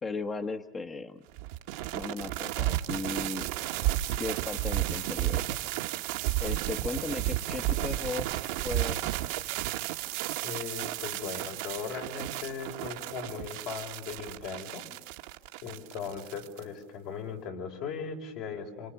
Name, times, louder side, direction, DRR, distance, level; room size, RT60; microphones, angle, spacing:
voice 1, 0.0-1.2 1.9-3.5 4.2-5.5 6.4-9.0, left 3 dB, 25° left, 7 dB, 1.3 m, -36 dB
sound 1, 1.4-16.6, right 14 dB, 80° right, 1.5 m, -33 dB
voice 2, 10.4-14.8 15.6-18.9, left 6 dB, 70° left, 2 dB, 6.1 m, -38 dB
29.5 x 27.0 x 7.1 m, 1.0 s
supercardioid pair, 115°, 0 cm